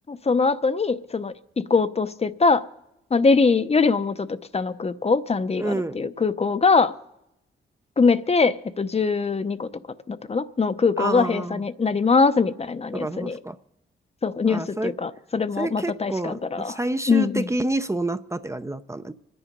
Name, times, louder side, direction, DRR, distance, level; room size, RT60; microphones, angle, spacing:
voice 1, 0.1-2.6 3.1-6.9 8.0-9.7 10.1-13.4 14.2-16.8 17.1-17.5, left 4 dB, 35° left, 11 dB, 0.7 m, -22 dB
voice 2, 5.5-6.0 11.0-11.6 12.9-13.6 14.5-14.9 15.6-19.1, right 2 dB, 15° right, 10 dB, 0.6 m, -28 dB
25.0 x 10.0 x 5.3 m, 0.83 s
cardioid pair, 85°, 19 cm